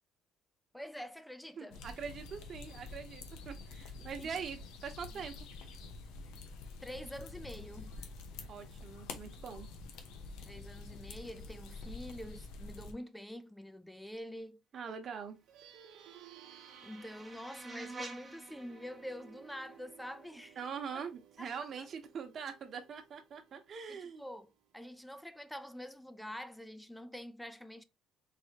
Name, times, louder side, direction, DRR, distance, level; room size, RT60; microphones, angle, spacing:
voice 1, 0.7-1.8 4.2-4.3 5.1-5.2 6.8-7.9 10.4-14.6 16.8-20.6 21.4-21.9 23.9-27.8, equal, 5° left, 0.5 m, -46 dB
voice 2, 1.6-5.3 8.5-9.7 14.7-15.4 20.6-24.3, right 6 dB, 45° right, 1.0 m, -43 dB
sound 1, 1.7-12.9, left 3 dB, 85° left, 0.8 m, -48 dB
Plucked string instrument, 15.3-25.1, right 10 dB, 80° right, 0.9 m, -59 dB
sound 2, 15.7-20.7, right 3 dB, 25° right, 0.8 m, -51 dB
4.2 x 3.0 x 2.9 m
cardioid pair, 110°, 0 cm